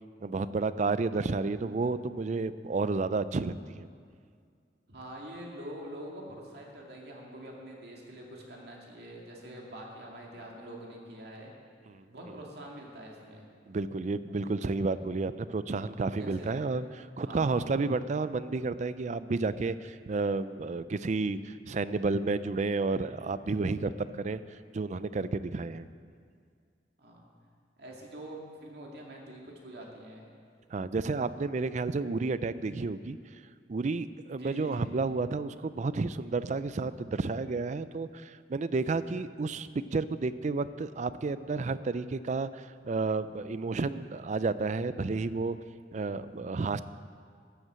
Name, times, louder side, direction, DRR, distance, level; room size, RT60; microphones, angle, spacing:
voice 1, 0.2-3.9 11.9-12.0 13.7-16.9 17.2-24.4 24.7-25.9 30.7-33.2 33.7-45.6 45.9-46.8, right 3 dB, 40° right, 14 dB, 0.4 m, -31 dB
voice 2, 4.9-11.5 12.1-13.5 16.1-16.5 17.2-17.6 27.0-27.2 27.8-30.3 34.3-35.1, right 1 dB, 65° right, -2 dB, 2.4 m, -45 dB
13.0 x 8.1 x 7.5 m, 2.2 s
head